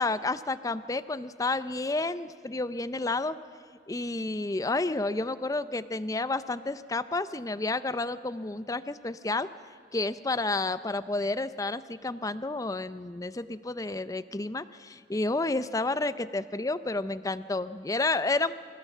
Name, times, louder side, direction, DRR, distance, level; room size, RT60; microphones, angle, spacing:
voice 1, 0.0-3.3 3.9-9.5 9.9-18.5, left 2 dB, 20° left, 14 dB, 0.5 m, -30 dB
25.5 x 15.0 x 7.3 m, 2.1 s
head